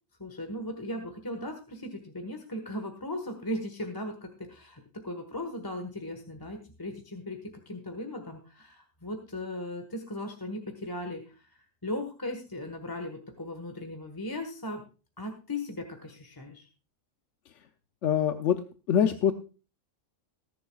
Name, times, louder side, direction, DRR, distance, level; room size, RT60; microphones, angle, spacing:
voice 1, 0.2-11.5 11.8-14.8 15.2-16.7, left 1 dB, 15° left, 4 dB, 1.4 m, -37 dB
voice 2, 18.0-18.6 18.9-19.3, left 9 dB, 70° left, 7 dB, 1.0 m, -24 dB
20.0 x 10.5 x 2.3 m, 0.34 s
omnidirectional pair, 1.3 m